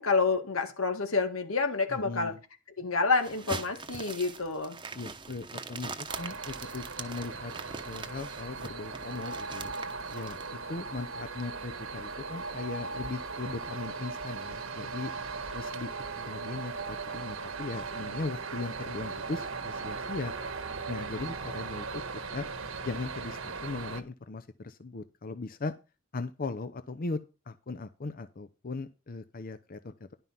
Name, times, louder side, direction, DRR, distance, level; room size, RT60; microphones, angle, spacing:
voice 1, 0.0-2.3 2.8-4.8, left 4 dB, 90° left, 1.9 m, -28 dB
voice 2, 1.9-2.4 4.9-7.5 7.9-9.7 10.1-10.4 10.7-15.1 15.5-15.9 16.2-20.3 20.9-22.0 22.3-22.5 22.8-25.7 26.1-27.2 27.5-30.1, left 3 dB, 45° left, 0.6 m, -38 dB
sound 1, 3.2-10.5, right 4 dB, 25° right, 0.9 m, -42 dB
sound 2, 6.1-24.0, right 4 dB, 75° right, 1.4 m, -38 dB
11.0 x 5.6 x 5.7 m
head